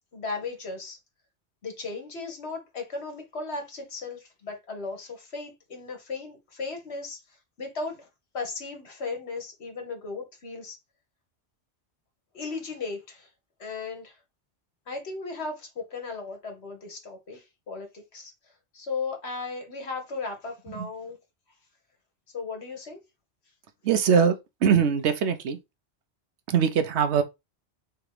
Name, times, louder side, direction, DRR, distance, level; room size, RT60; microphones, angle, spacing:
voice 1, 0.1-1.0 1.6-8.1 8.3-10.8 12.3-13.3 13.6-14.2 14.9-18.3 18.7-21.2 22.3-23.0, left 4 dB, 65° left, 1.5 m, -36 dB
voice 2, 23.8-24.3 24.6-25.6 26.5-27.2, right 7 dB, 75° right, 1.0 m, -22 dB
3.5 x 3.0 x 4.7 m
omnidirectional pair, 1.2 m